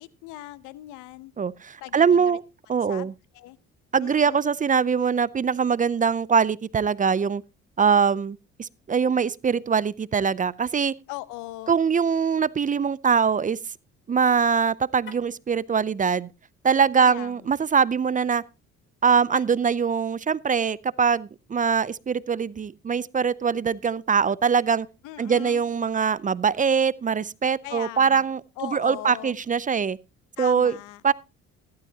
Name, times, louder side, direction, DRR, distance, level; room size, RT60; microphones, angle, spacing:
voice 1, 0.0-1.3 1.8-2.4 2.9-3.6 4.0-4.4 11.1-11.8 17.0-17.5 25.0-25.6 27.6-28.3 28.6-29.4 30.4-31.0, left 17 dB, 80° left, 0.8 m, -39 dB
voice 2, 1.4-2.4 2.7-3.1 3.9-7.4 7.8-11.0 11.7-13.6 14.1-16.3 16.6-18.4 19.0-24.9 25.2-30.0 30.4-30.7 31.0-31.1, right 6 dB, 25° right, 0.5 m, -23 dB
Car, 15.0-15.4 19.3-19.8, left 6 dB, 40° left, 2.2 m, -45 dB
14.5 x 12.5 x 2.8 m
supercardioid pair, 70°, 30 cm